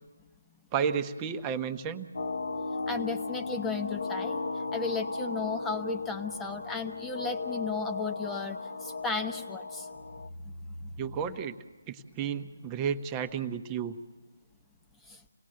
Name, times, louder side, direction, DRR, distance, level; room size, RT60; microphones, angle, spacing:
voice 1, 0.7-2.1 11.0-11.5 11.9-14.0, right 7 dB, 20° right, 9 dB, 1.1 m, -32 dB
sound 1, 2.1-10.3, left 3 dB, 65° left, 1.1 m, -36 dB
voice 2, 2.9-9.9 10.4-10.5 10.8-10.9 15.1-15.2, left 4 dB, 10° left, 6 dB, 1.1 m, -35 dB
28.5 x 19.0 x 7.7 m, 1.2 s
figure-of-eight pair, 150°, 0 cm